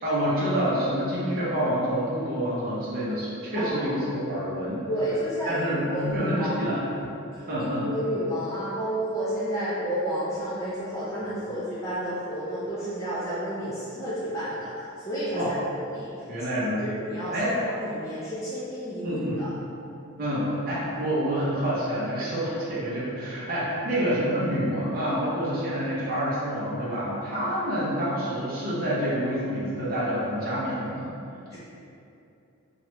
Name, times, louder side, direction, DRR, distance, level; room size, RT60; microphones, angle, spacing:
voice 1, 0.0-4.9 5.5-6.8 7.3-7.9 11.2-11.5 15.3-15.5 16.3-16.9 17.3-17.7 19.0-19.4 20.2-31.1, equal, 40° right, -8 dB, 0.6 m, -27 dB
voice 2, 3.5-3.9 4.9-5.6 5.9-6.6 7.9-14.7 15.0-15.4 15.9-16.1 17.0-17.3 17.8-19.5 31.5-31.6, equal, 15° left, -12 dB, 0.5 m, -30 dB
3.0 x 2.3 x 3.0 m, 2.7 s
head